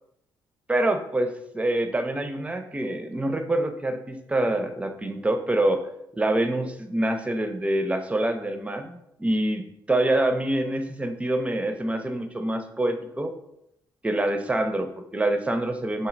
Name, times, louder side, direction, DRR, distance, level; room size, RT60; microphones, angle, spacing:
voice 1, 0.7-5.9 6.1-13.3 14.0-16.1, right 1 dB, 10° right, 7 dB, 0.4 m, -26 dB
3.1 x 2.2 x 3.0 m, 0.77 s
figure-of-eight pair, 40°, 11 cm